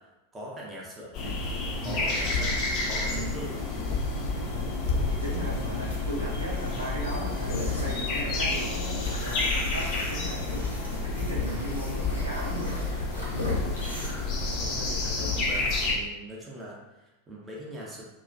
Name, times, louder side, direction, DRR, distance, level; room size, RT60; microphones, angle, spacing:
voice 1, 0.0-1.4 1.8-3.7 14.6-18.0, equal, 15° right, -3 dB, 0.5 m, -41 dB
sound 1, 1.1-16.0, left 3 dB, 40° left, 0.4 m, -30 dB
voice 2, 1.8-2.1 3.1-3.4 4.5-4.8 5.1-12.9, right 1 dB, 85° right, -7 dB, 0.8 m, -37 dB
sound 2, 5.2-14.1, left 2 dB, 85° left, 0.7 m, -38 dB
2.3 x 2.1 x 2.5 m, 1.0 s
figure-of-eight pair, 90°, 0 cm